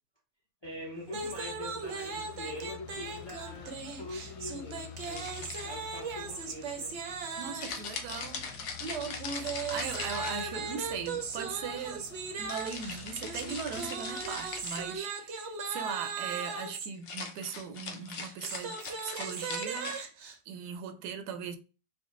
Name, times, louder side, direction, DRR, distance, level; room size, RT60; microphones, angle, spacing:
sound 1, 0.6-15.0, left 8 dB, 90° left, 1.2 m, -49 dB
voice 1, 0.6-7.0 15.6-15.8, left 1 dB, 30° left, 0.5 m, -44 dB
sound 2, 1.1-7.8 8.8-16.9 18.1-20.4, right 4 dB, 60° right, 0.8 m, -38 dB
sound 3, 5.0-5.9 7.6-10.8 12.5-15.0 17.0-20.0, left 5 dB, 60° left, 0.9 m, -41 dB
voice 2, 7.4-8.5 9.3-12.1 12.4-20.0 20.5-21.6, right 7 dB, 85° right, 1.1 m, -39 dB
4.7 x 2.1 x 3.0 m
omnidirectional pair, 1.6 m